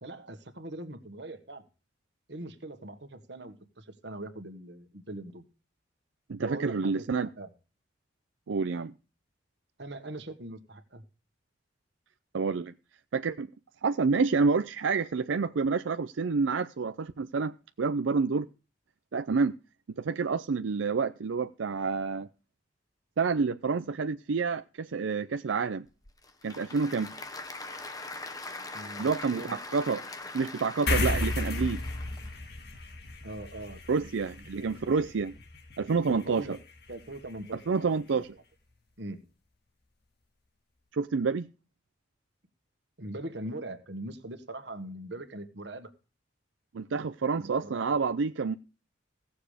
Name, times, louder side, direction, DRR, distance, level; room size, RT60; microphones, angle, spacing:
voice 1, 0.0-1.6 2.3-5.4 6.4-7.0 7.4-7.5 9.8-11.0 28.7-29.6 33.2-34.1 34.6-34.7 36.1-36.6 36.9-38.2 39.0-39.3 43.0-45.9 47.4-47.9, right 1 dB, 65° right, 1.6 m, -41 dB
voice 2, 6.3-7.3 8.5-8.9 12.3-12.7 13.1-13.5 13.8-18.5 19.1-19.6 20.0-22.3 23.2-25.9 26.4-27.1 29.0-30.0 30.3-31.8 33.9-35.3 35.8-36.5 37.7-38.3 40.9-41.5 46.7-48.5, right 4 dB, 90° right, 0.5 m, -28 dB
Applause / Crowd, 25.9-32.3, left 2 dB, 20° left, 1.0 m, -42 dB
sound 1, 30.9-37.7, left 2 dB, 55° left, 1.9 m, -34 dB
17.0 x 7.1 x 5.0 m
head